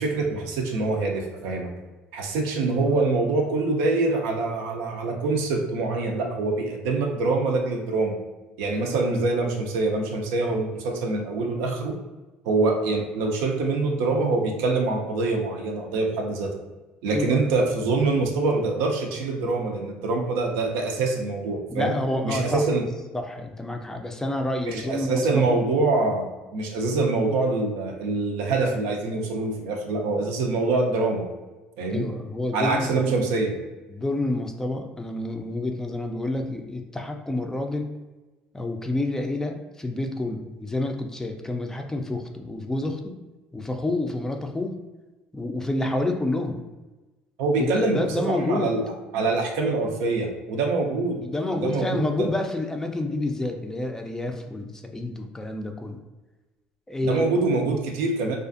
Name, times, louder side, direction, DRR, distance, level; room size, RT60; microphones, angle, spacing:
voice 1, 0.0-1.7 2.1-8.2 8.6-12.0 12.5-16.5 17.0-22.0 22.2-22.8 24.7-26.3 26.5-31.3 31.8-32.1 32.5-33.5 47.4-51.2 51.5-52.3 57.0-58.4, right 3 dB, 85° right, 2 dB, 0.4 m, -25 dB
voice 2, 21.7-22.6 23.1-25.6 31.9-32.9 33.9-37.9 38.5-43.2 43.5-44.7 45.3-46.6 47.6-48.7 51.2-56.0 56.9-57.3, left 2 dB, 10° left, 4 dB, 0.3 m, -28 dB
2.4 x 2.4 x 2.4 m, 1.2 s
supercardioid pair, 80°, 4 cm